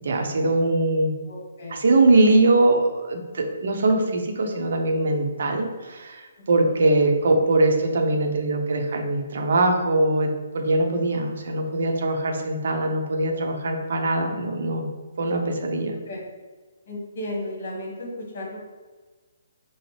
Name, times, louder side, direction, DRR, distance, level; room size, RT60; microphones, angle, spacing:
voice 1, 0.0-1.1 1.7-10.3 10.5-14.9 15.2-16.0, right 2 dB, 55° right, 3 dB, 0.7 m, -22 dB
voice 2, 1.3-1.8 6.4-6.8 16.1-16.3 16.8-18.6, left 1 dB, 45° left, -2 dB, 1.3 m, -35 dB
5.8 x 2.1 x 3.2 m, 1.3 s
figure-of-eight pair, 135°, 0 cm